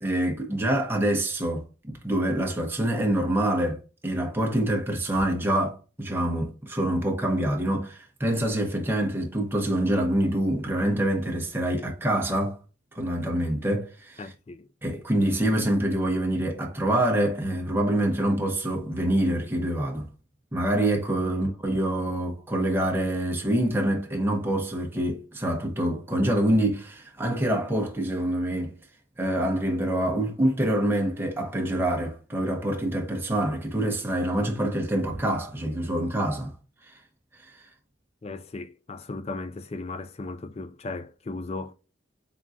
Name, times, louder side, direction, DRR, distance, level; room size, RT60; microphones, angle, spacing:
voice 1, 0.0-3.8 4.0-12.6 12.9-14.2 14.8-20.1 20.5-28.7 29.2-36.5 37.4-37.6, right 1 dB, 10° right, 0.9 m, -26 dB
voice 2, 14.2-14.7 21.3-21.6 38.2-41.7, left 3 dB, 35° left, 0.4 m, -36 dB
3.7 x 3.7 x 2.5 m
head